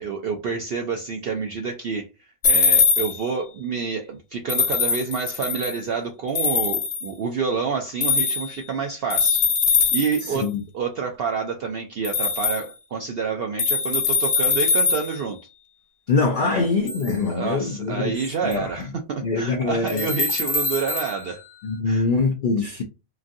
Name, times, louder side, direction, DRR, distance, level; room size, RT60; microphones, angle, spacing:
voice 1, 0.0-2.1 2.4-10.5 10.7-15.4 16.4-16.7 17.3-21.4 21.9-22.1, right 5 dB, 70° right, 0.5 m, -28 dB
sound 1, 2.4-3.3 4.5-5.8 6.3-7.1 8.0-8.6 9.1-10.4 12.0-12.6 13.6-15.2 16.9-17.1 18.5-18.6 19.9-21.1, left 5 dB, 50° left, 0.9 m, -22 dB
voice 2, 10.2-10.6 16.1-18.8 19.2-20.1 21.6-22.8, left 4 dB, 75° left, 0.4 m, -24 dB
3.0 x 2.5 x 2.5 m
omnidirectional pair, 1.5 m